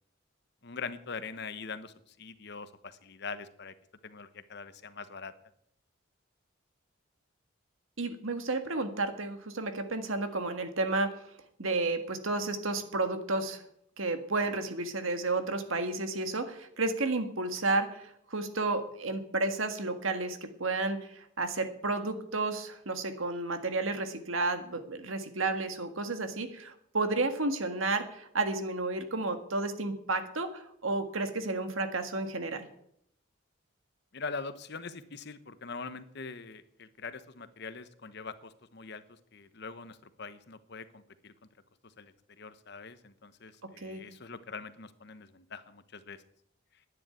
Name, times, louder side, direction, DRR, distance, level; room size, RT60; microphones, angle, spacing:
voice 1, 0.6-3.7 4.0-5.3 34.1-41.3 41.8-46.2, left 4 dB, 55° left, 12 dB, 1.0 m, -43 dB
voice 2, 8.0-11.1 11.6-13.6 14.0-32.7 43.8-44.0, right 3 dB, 85° right, 8 dB, 1.8 m, -32 dB
11.0 x 10.0 x 9.1 m, 0.73 s
head